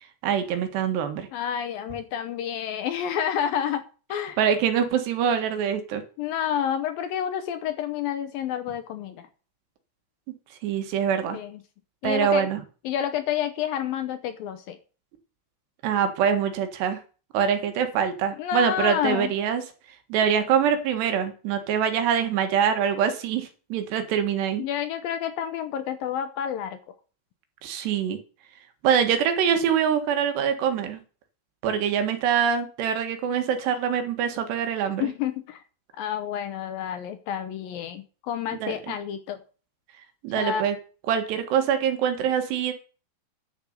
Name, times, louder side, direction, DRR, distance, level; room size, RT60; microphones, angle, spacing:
voice 1, 0.2-1.3 4.4-6.0 10.6-11.4 12.0-12.6 15.8-17.0 17.3-19.6 20.1-24.6 27.6-28.2 28.8-31.0 31.6-35.1 38.6-38.8 40.2-40.8 41.1-42.7, right 8 dB, 80° right, 7 dB, 3.8 m, -24 dB
voice 2, 1.3-3.8 4.1-4.4 6.2-9.2 11.3-11.6 12.0-12.5 12.8-14.8 18.4-19.3 24.6-26.8 35.0-35.6 36.0-39.4 40.4-40.6, left 9 dB, 70° left, 9 dB, 2.3 m, -29 dB
11.0 x 7.2 x 6.6 m, 0.36 s
omnidirectional pair, 4.9 m